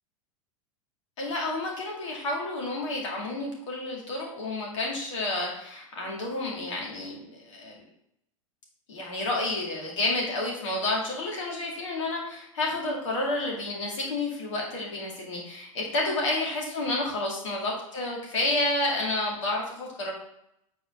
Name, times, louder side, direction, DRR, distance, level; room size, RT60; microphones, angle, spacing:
voice 1, 1.2-7.8 8.9-20.1, left 2 dB, 60° left, -2 dB, 2.4 m, -30 dB
8.1 x 4.5 x 3.7 m, 0.77 s
figure-of-eight pair, 95°, 18 cm